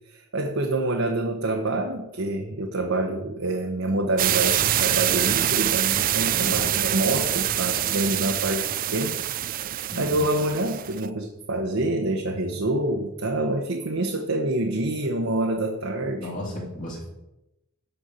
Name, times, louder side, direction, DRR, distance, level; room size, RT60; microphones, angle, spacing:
voice 1, 0.1-9.2 10.0-16.3, right 2 dB, 70° right, 1 dB, 1.2 m, -26 dB
sound 1, 4.2-11.1, right 12 dB, 40° right, 0.4 m, -25 dB
voice 2, 6.3-6.6 9.9-10.2 16.2-17.1, left 1 dB, 40° left, -4 dB, 3.2 m, -35 dB
12.5 x 4.6 x 8.2 m, 0.91 s
head